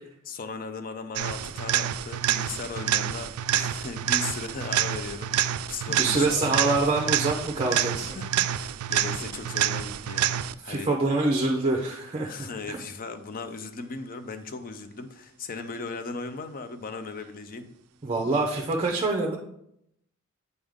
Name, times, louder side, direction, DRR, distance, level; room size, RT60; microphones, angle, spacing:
voice 1, 0.3-6.6 7.7-10.9 12.2-17.7, left 4 dB, 40° left, 9 dB, 0.5 m, -37 dB
sound 1, 1.1-10.8 18.7-18.8, right 11 dB, 80° right, 0.3 m, -28 dB
voice 2, 5.9-8.2 10.6-12.8 18.0-19.4, right 3 dB, 25° right, 0 dB, 0.6 m, -26 dB
8.0 x 3.6 x 3.6 m, 0.75 s
head